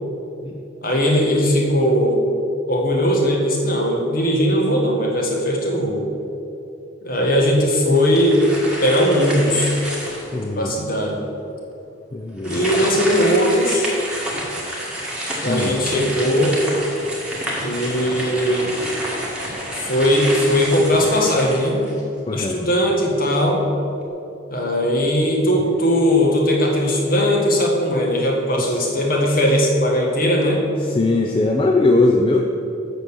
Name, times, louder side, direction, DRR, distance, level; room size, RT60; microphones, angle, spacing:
voice 1, 0.8-2.2 2.7-6.1 7.0-8.4 8.8-9.7 10.5-11.2 12.4-13.9 15.4-16.6 17.6-18.7 19.7-21.8 22.3-23.6 24.5-30.6, equal, 45° left, -1 dB, 1.6 m, -19 dB
sound 1, 7.9-10.5 11.0-11.1 12.4-22.2, equal, 5° right, 1.6 m, -29 dB
voice 2, 10.3-10.7 12.1-12.6 15.4-15.8 22.3-22.6 28.6-28.9 30.8-32.4, left 2 dB, 25° left, 2 dB, 0.4 m, -20 dB
7.9 x 6.3 x 7.0 m, 2.8 s
head